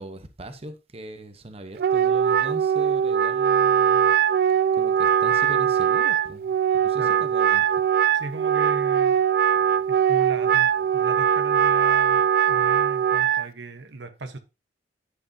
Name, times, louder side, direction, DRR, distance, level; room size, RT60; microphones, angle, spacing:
voice 1, 0.0-4.1 4.7-7.7 9.7-9.9, right 1 dB, 35° right, 0.9 m, -40 dB
Wind instrument woodwind instrument, 1.8-13.5, right 8 dB, 60° right, 0.3 m, -21 dB
voice 2, 7.0-7.3 8.1-9.2 9.9-14.4, right 2 dB, 80° right, 1.1 m, -37 dB
10.0 x 8.0 x 2.7 m
head